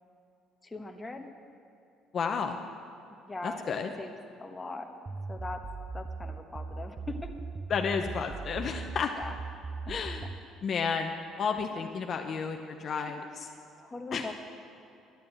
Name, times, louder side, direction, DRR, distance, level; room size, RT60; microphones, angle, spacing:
voice 1, 0.6-1.3 3.2-4.1 4.4-4.9 5.3-5.6 5.9-7.3 9.1-9.3 9.9-10.0 13.8-14.3, left 2 dB, 15° left, 4 dB, 1.1 m, -40 dB
voice 2, 2.1-2.6 3.4-3.9 7.7-9.1 9.9-10.3 10.6-11.1 11.4-13.2 14.1-14.3, left 6 dB, 40° left, 4 dB, 0.7 m, -31 dB
sound 1, 5.1-10.4, right 4 dB, 20° right, 0.4 m, -39 dB
11.5 x 8.5 x 8.9 m, 2.8 s
cardioid pair, 135°, 0 cm